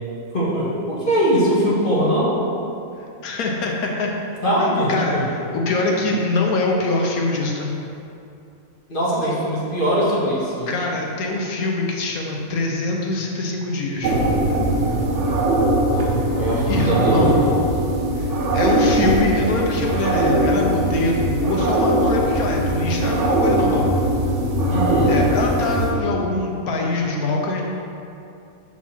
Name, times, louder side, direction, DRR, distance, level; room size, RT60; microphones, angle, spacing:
voice 1, 0.3-2.4 4.4-5.3 8.9-10.7 15.9-17.7 24.7-25.2, equal, 40° left, -7 dB, 1.4 m, -21 dB
voice 2, 3.2-4.1 4.9-7.7 10.7-14.1 16.7-17.4 18.2-23.9 25.1-27.6, left 2 dB, 85° left, 0 dB, 1.3 m, -23 dB
sound 1, 14.0-25.9, right 1 dB, 60° right, 1.0 m, -20 dB
5.8 x 4.5 x 4.3 m, 2.6 s
omnidirectional pair, 1.5 m